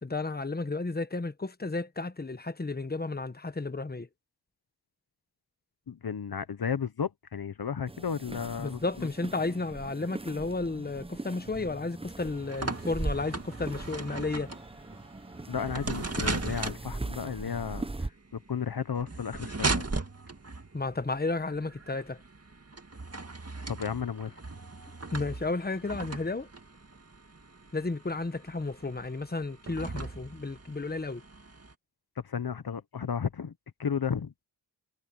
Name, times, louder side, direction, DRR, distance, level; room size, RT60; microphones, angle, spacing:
voice 1, 0.0-4.1 8.6-14.5 20.7-22.2 25.1-26.5 27.7-31.2, left 3 dB, 25° left, 1.2 m, -33 dB
voice 2, 5.9-9.1 15.5-19.8 23.7-24.4 32.2-33.5 33.8-34.3, left 7 dB, 60° left, 1.0 m, -33 dB
sound 1, 7.9-18.1, right 2 dB, 15° right, 0.8 m, -40 dB
sound 2, 12.2-31.7, right 3 dB, 35° right, 2.0 m, -38 dB
wide cardioid pair, 60°, 41 cm